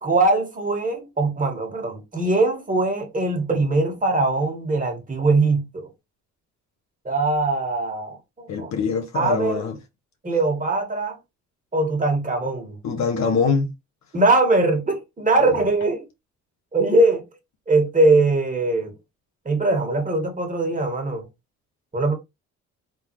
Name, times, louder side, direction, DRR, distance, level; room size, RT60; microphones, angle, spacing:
voice 1, 0.0-5.9 7.1-8.7 9.1-9.7 10.2-11.2 11.7-12.8 14.1-16.1 16.7-17.2 17.7-18.9 19.5-21.3 21.9-22.1, right 2 dB, 25° right, 1.8 m, -21 dB
voice 2, 8.5-9.8 12.8-13.7, left 5 dB, 65° left, 1.2 m, -23 dB
3.9 x 3.5 x 3.1 m
cardioid pair, 90°, 30 cm